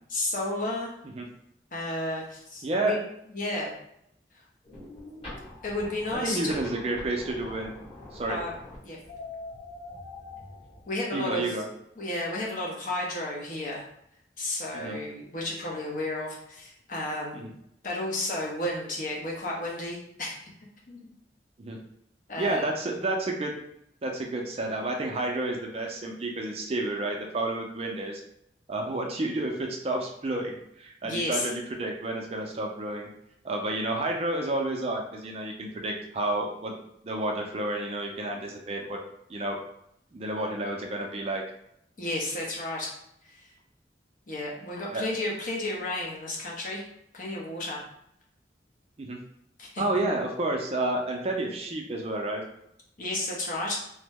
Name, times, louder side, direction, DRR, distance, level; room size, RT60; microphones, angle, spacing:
voice 1, 0.1-0.9 1.7-3.0 3.3-3.7 5.6-6.5 8.3-8.5 8.8-9.0 10.9-11.5 12.0-13.8 14.4-17.5 17.8-20.5 20.9-21.1 22.3-22.7 31.0-31.5 42.0-42.9 43.2-43.5 44.3-46.8 47.1-47.8 49.6-49.8 53.0-53.8, left 1 dB, 50° left, -3 dB, 0.8 m, -32 dB
voice 2, 2.6-3.0 6.2-7.7 8.1-8.4 11.1-11.7 14.7-15.0 17.3-17.5 21.6-21.8 22.4-23.5 24.0-28.2 28.7-33.1 33.4-36.7 37.0-39.0 39.3-39.6 40.1-41.4 44.9-45.0 49.0-49.2 49.8-52.4, right 2 dB, 35° right, 1 dB, 0.4 m, -30 dB
sound 1, 4.6-10.8, left 2 dB, 35° left, 1.4 m, -43 dB
2.9 x 2.1 x 3.4 m, 0.75 s
head